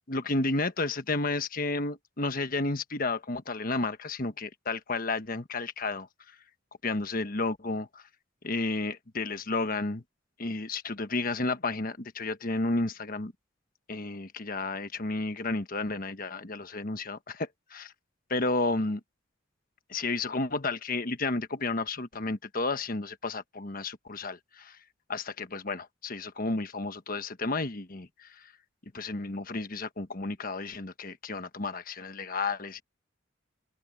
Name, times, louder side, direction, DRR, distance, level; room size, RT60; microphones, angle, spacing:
voice 1, 0.1-6.3 6.8-8.0 8.4-10.0 10.4-13.3 13.9-17.9 18.3-19.0 19.9-24.8 25.1-28.5 28.9-32.8, left 3 dB, 45° left, 1.3 m, -32 dB
open air
head